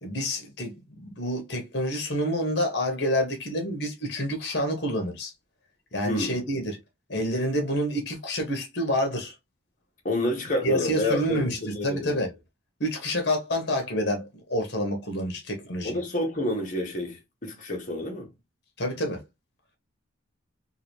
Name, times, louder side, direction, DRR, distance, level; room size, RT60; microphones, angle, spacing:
voice 1, 0.0-5.3 5.9-6.8 7.1-9.3 10.6-12.3 12.8-16.0 18.8-19.2, equal, 55° left, 1.3 m, -28 dB
voice 2, 6.0-6.4 10.0-12.2 15.8-18.3, left 1 dB, 40° left, 1.4 m, -29 dB
3.9 x 2.6 x 3.2 m
head